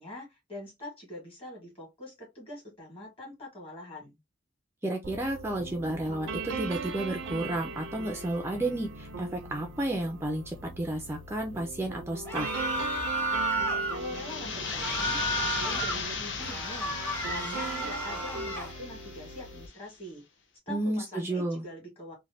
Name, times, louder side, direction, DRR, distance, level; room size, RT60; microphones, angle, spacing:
voice 1, 0.0-4.2 13.9-20.2 20.7-22.1, left 1 dB, 30° left, 1.6 m, -43 dB
voice 2, 4.8-12.5 20.7-21.7, right 1 dB, 15° right, 0.4 m, -32 dB
sound 1, 5.0-19.7, right 3 dB, 90° right, 0.6 m, -40 dB
sound 2, 12.3-14.0 14.7-16.0 16.4-18.7, right 1 dB, 10° left, 0.7 m, -32 dB
sound 3, 13.8-19.5, left 5 dB, 75° left, 0.7 m, -36 dB
3.1 x 2.2 x 2.6 m
head